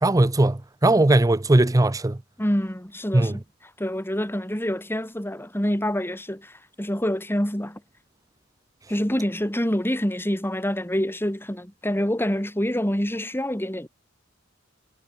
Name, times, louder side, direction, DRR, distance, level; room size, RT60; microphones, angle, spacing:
voice 1, 0.0-2.2 3.1-3.4, right 2 dB, 15° right, 0.6 m, -19 dB
voice 2, 2.4-3.4 3.8-7.8 8.9-13.9, equal, 10° left, 3.7 m, -26 dB
head